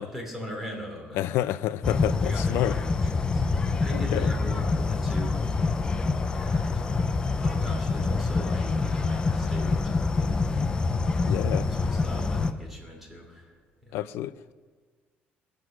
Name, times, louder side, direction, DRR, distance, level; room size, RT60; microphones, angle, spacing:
voice 1, 0.0-1.4 2.2-10.7 11.4-13.6 13.9-14.0, equal, 5° right, 3.1 m, -41 dB
voice 2, 1.1-2.7 3.9-4.3 11.2-11.7 13.9-14.5, left 13 dB, 75° left, 0.5 m, -29 dB
sound 1, 1.8-12.5, left 3 dB, 20° left, 0.6 m, -26 dB
21.0 x 8.0 x 6.1 m
cardioid pair, 165°, 4 cm